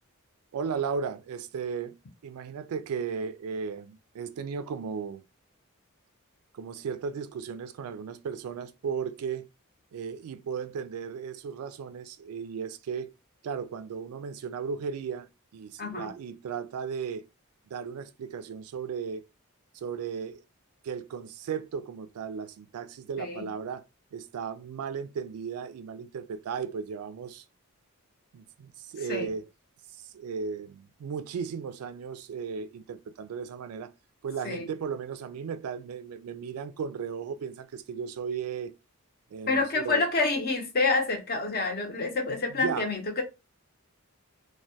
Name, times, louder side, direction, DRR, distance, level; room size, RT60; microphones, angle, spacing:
voice 1, 0.5-1.9 2.2-5.2 6.5-9.5 9.9-13.1 13.4-17.3 17.7-19.2 19.7-20.4 20.8-23.8 24.1-27.4 28.3-29.5 30.0-33.9 34.2-38.7 39.3-40.0 42.5-42.9, right 6 dB, 80° right, 0.3 m, -35 dB
voice 2, 15.8-16.1 23.2-23.5 29.1-29.3 34.4-34.7 39.5-43.2, left 3 dB, 45° left, 0.6 m, -28 dB
2.2 x 2.1 x 2.7 m
head